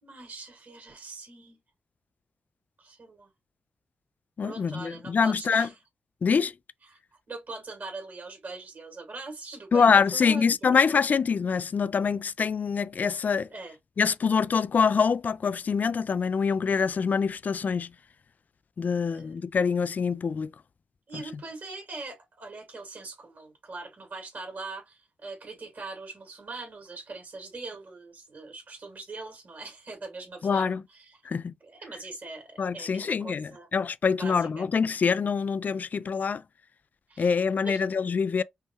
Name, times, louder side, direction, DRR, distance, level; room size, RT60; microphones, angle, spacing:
voice 1, 0.0-1.6 2.8-3.3 4.4-5.7 6.9-7.0 7.3-11.0 13.5-13.8 19.1-19.4 21.1-31.2 31.6-33.7 34.2-34.7 37.1-37.8, right 3 dB, 60° right, 2.6 m, -42 dB
voice 2, 4.4-5.7 6.2-6.5 9.7-13.5 14.0-17.9 18.8-20.5 21.1-21.2 30.4-30.8 31.3-31.5 32.6-36.4 37.2-38.4, left 6 dB, 55° left, 0.3 m, -25 dB
5.5 x 2.2 x 3.0 m
supercardioid pair, 40°, 3 cm